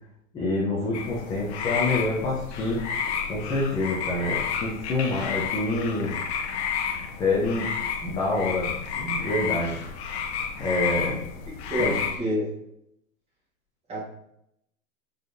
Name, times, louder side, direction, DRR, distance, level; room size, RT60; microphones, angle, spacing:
voice 1, 0.3-2.8 3.3-6.1 7.2-7.7 8.0-9.8 10.6-11.2 11.8-11.9, left 2 dB, 10° left, -5 dB, 0.5 m, -27 dB
sound 1, 0.9-12.2, left 6 dB, 55° left, 0.9 m, -31 dB
voice 2, 11.5-12.5 13.9-14.1, equal, 15° right, -4 dB, 1.5 m, -29 dB
5.0 x 4.0 x 2.6 m, 0.77 s
supercardioid pair, 150°, 40 cm